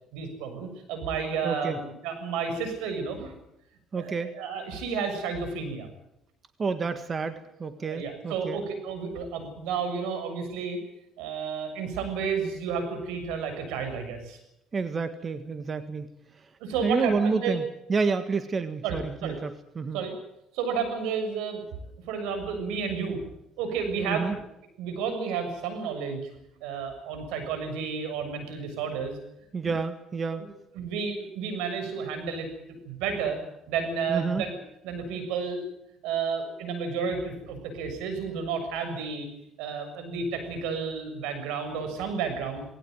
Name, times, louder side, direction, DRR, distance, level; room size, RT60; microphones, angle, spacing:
voice 1, 0.1-3.3 4.0-5.9 7.8-10.8 11.2-14.4 16.6-17.6 18.8-19.4 19.9-20.1 20.5-21.7 22.1-23.2 23.6-24.4 24.8-26.3 26.6-29.2 29.6-29.7 30.8-32.5 32.8-33.4 33.7-34.6 34.8-35.6 36.0-39.3 39.6-42.7, right 5 dB, 90° right, 7 dB, 7.1 m, -31 dB
voice 2, 1.4-1.8 3.9-4.4 6.6-8.6 14.7-16.1 16.8-17.6 17.9-20.0 24.1-24.4 29.5-30.5 34.1-34.4, right 4 dB, 35° right, 9 dB, 1.7 m, -29 dB
20.0 x 18.0 x 9.4 m, 0.81 s
cardioid pair, 105°, 0 cm